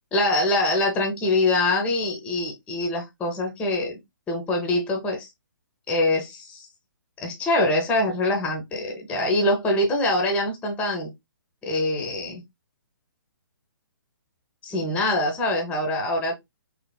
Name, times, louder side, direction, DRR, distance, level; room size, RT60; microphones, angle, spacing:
voice 1, 0.1-4.0 4.3-5.3 5.9-6.7 7.2-11.1 11.6-12.4 14.6-16.3, left 2 dB, 10° left, 0.6 m, -24 dB
3.2 x 2.1 x 2.2 m
hypercardioid pair, 145°, 12 cm